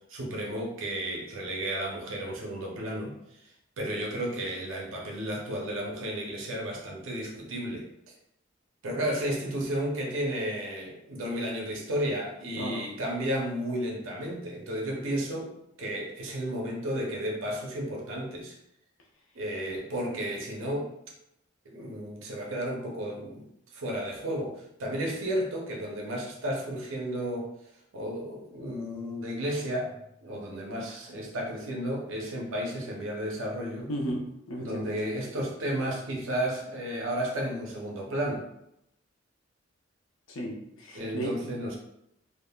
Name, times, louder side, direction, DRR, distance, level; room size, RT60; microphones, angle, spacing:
voice 1, 0.0-7.9 8.8-15.5 15.8-18.5 19.3-20.9 21.6-27.5 27.9-30.0 30.2-33.9 34.6-38.4 40.9-41.8, right 1 dB, 80° right, -1 dB, 0.6 m, -33 dB
voice 2, 33.9-34.9 40.3-41.3, equal, 90° left, -1 dB, 0.6 m, -34 dB
3.5 x 2.0 x 2.2 m, 0.80 s
head